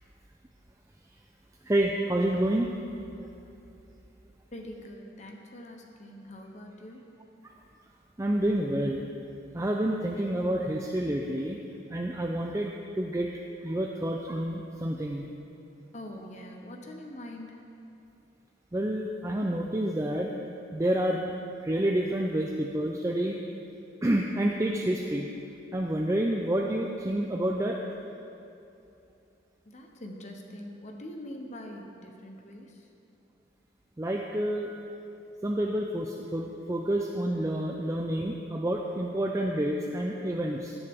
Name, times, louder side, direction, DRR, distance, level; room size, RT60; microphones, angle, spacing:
voice 1, 1.7-2.7 8.2-9.0 9.5-11.6 11.9-13.3 13.6-15.3 18.7-20.3 20.7-21.3 21.6-23.4 24.0-25.3 25.7-27.8 34.0-34.7 35.4-40.8, right 1 dB, 15° right, 0 dB, 0.4 m, -28 dB
voice 2, 4.5-7.0 15.9-17.6 29.6-32.9, left 1 dB, 35° left, 2 dB, 0.8 m, -43 dB
16.5 x 9.7 x 3.6 m, 2.7 s
head